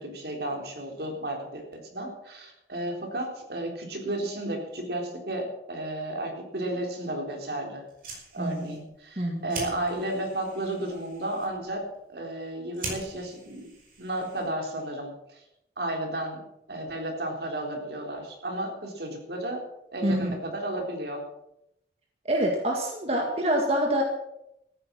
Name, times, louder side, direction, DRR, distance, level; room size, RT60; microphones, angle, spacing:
voice 1, 0.0-13.7 14.0-15.4 15.8-19.7 19.9-21.2, right 1 dB, 65° right, 2 dB, 3.8 m, -33 dB
Fire, 7.8-14.7, right 3 dB, 50° right, 5.0 m, -43 dB
voice 2, 8.4-8.8 9.2-9.5 20.0-20.3 22.3-24.0, right 1 dB, 35° right, 1 dB, 1.9 m, -26 dB
14.5 x 10.0 x 7.5 m, 0.83 s
head